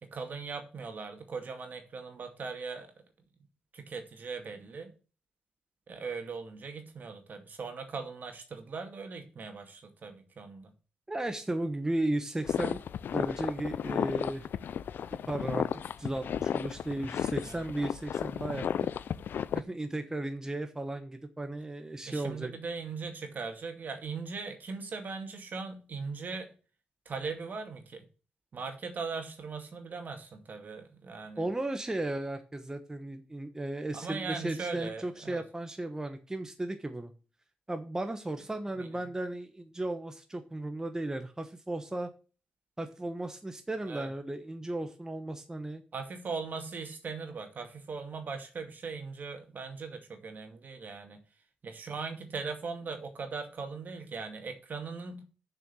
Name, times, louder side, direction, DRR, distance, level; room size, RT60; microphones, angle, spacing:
voice 1, 0.0-2.9 3.7-4.9 5.9-10.7 17.4-17.6 22.1-26.5 27.1-28.1 28.5-31.5 33.9-35.4 38.8-39.0 43.8-44.1 45.9-51.2 51.6-55.2, right 4 dB, 60° right, 5 dB, 2.3 m, -39 dB
voice 2, 11.1-12.8 13.1-14.5 15.3-18.6 19.5-22.5 31.4-37.1 37.7-42.1 42.8-45.8, right 1 dB, 15° right, 7 dB, 1.2 m, -35 dB
sound 1, 12.4-19.6, left 8 dB, 75° left, 0.4 m, -33 dB
7.1 x 6.0 x 6.9 m, 0.35 s
cardioid pair, 70°, 3 cm